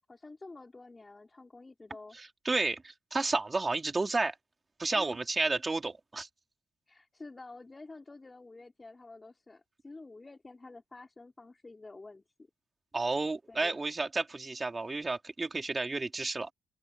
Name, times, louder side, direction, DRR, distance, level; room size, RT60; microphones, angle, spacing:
voice 1, 0.1-2.2 4.9-5.2 6.9-12.5 13.5-13.8, left 3 dB, 20° left, 4.7 m, -49 dB
voice 2, 2.2-4.4 4.8-6.3 12.9-16.5, right 3 dB, 25° right, 3.7 m, -31 dB
open air
cardioid pair, 90°, 0 cm